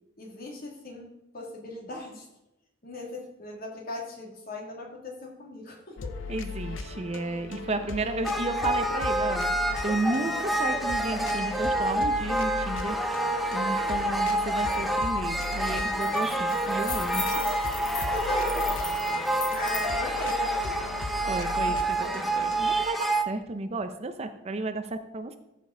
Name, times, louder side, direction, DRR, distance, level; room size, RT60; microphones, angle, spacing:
voice 1, 0.2-2.3 2.8-6.1 18.0-18.7 19.1-19.2 19.5-20.9 21.6-22.4, left 2 dB, 50° left, -1 dB, 2.2 m, -38 dB
sound 1, 6.0-22.9, left 4 dB, 90° left, 0.7 m, -38 dB
voice 2, 6.3-9.5 9.8-13.0 13.5-17.4 21.3-22.0 22.4-25.4, right 2 dB, 35° right, 9 dB, 0.6 m, -32 dB
sound 2, 8.2-23.2, right 1 dB, ahead, 0.7 m, -28 dB
sound 3, 14.7-14.8 15.1-15.4 15.7-19.9, left 4 dB, 20° left, 1.0 m, -38 dB
14.0 x 5.2 x 3.8 m, 0.92 s
head